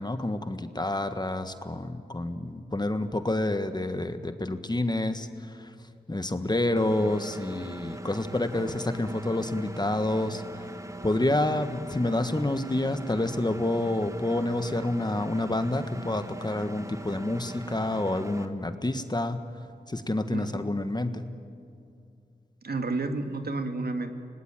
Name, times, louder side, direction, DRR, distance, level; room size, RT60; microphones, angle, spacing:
voice 1, 0.0-5.7 6.1-10.6 11.0-19.4 19.9-21.2, left 1 dB, 25° left, 9 dB, 1.6 m, -28 dB
Engine, 6.8-18.5, right 1 dB, 15° right, 1.4 m, -41 dB
voice 2, 22.6-24.1, right 3 dB, 65° right, 6 dB, 2.0 m, -30 dB
25.5 x 18.5 x 9.1 m, 2.5 s
cardioid pair, 40°, 18 cm